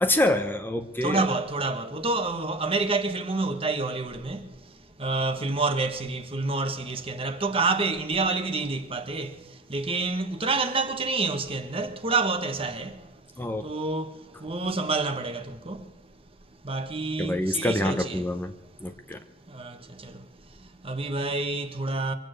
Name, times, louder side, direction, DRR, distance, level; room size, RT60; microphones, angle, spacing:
voice 1, 0.0-1.2 13.4-13.6 17.2-18.5 18.8-19.2, left 1 dB, 10° left, 0.8 m, -26 dB
voice 2, 1.0-13.2 13.6-16.0 16.6-18.3 18.8-18.9 19.2-22.1, right 3 dB, 35° right, 1.3 m, -29 dB
24.0 x 9.0 x 6.4 m
head